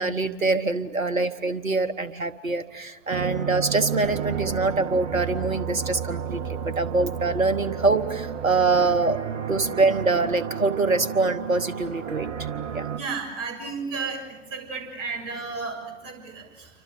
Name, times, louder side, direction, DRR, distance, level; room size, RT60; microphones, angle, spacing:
voice 1, 0.0-9.2 9.5-12.3 12.7-12.8, right 3 dB, 90° right, 13 dB, 1.4 m, -24 dB
sound 1, 3.1-13.0, right 7 dB, 60° right, 2.3 m, -32 dB
voice 2, 12.9-16.7, right 4 dB, 35° right, 4 dB, 6.9 m, -33 dB
28.5 x 25.5 x 7.7 m, 1.1 s
figure-of-eight pair, 95°, 39 cm